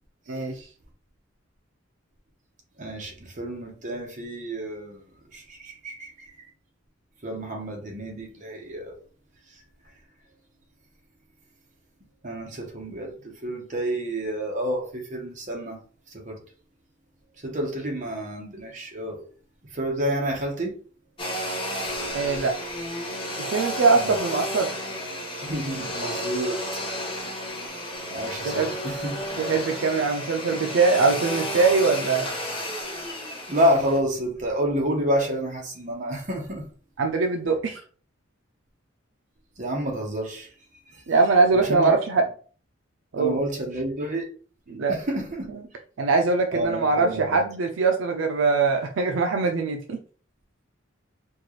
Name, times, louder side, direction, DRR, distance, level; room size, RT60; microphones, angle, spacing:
voice 1, 0.3-0.7 22.1-22.6 23.5-24.7 28.4-28.7 29.4-32.3 37.0-37.8 41.1-42.3 43.1-43.4 44.7-45.0 45.5-45.6 46.0-50.0, right 4 dB, 70° right, 0.5 m, -22 dB
voice 2, 2.8-5.0 5.3-6.3 7.2-8.9 12.2-15.8 16.1-16.4 17.4-19.2 19.7-20.8 24.0-24.2 25.4-26.6 28.1-29.2 33.5-36.7 39.6-40.5 41.6-42.0 43.2-44.3 44.9-45.5 46.5-47.4, equal, 40° right, 1.0 m, -29 dB
Domestic sounds home sounds, 21.2-34.0, equal, 25° left, 0.9 m, -32 dB
4.4 x 2.4 x 3.0 m
head